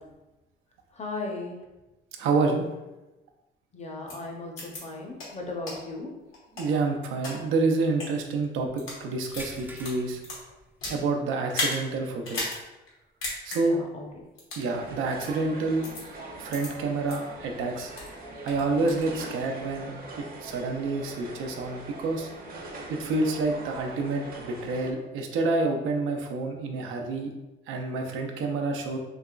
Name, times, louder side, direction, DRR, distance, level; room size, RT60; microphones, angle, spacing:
voice 1, 0.9-1.6 3.7-6.1 13.5-14.0 22.5-22.7, left 2 dB, 35° left, 0 dB, 0.8 m, -37 dB
voice 2, 2.2-2.6 6.6-10.2 10.9-12.5 13.4-13.8 14.6-15.8 16.4-17.9 18.4-22.3 22.9-27.3 27.7-29.0, right 3 dB, 90° right, 2 dB, 0.5 m, -28 dB
sound 1, 4.1-4.2 4.6-4.8 5.2-5.3 5.7-5.8 6.3-7.3 7.9-8.1 8.6-9.0 9.3-11.0 11.5-11.8 12.2-12.6 12.9-13.0 13.2-13.6 14.4-14.7 15.2-15.3 15.8-16.0 16.5-16.7 17.1-17.2 17.6-18.1 18.5-19.0, left 2 dB, 85° left, 1.2 m, -34 dB
sound 2, 9.4-11.3 11.6-11.8 12.3-12.4 14.1-14.2, right 1 dB, 10° right, 0.4 m, -46 dB
sound 3, 14.7-24.9, right 2 dB, 45° right, 0.7 m, -42 dB
3.5 x 2.9 x 2.4 m, 1.0 s
cardioid pair, 90°, 20 cm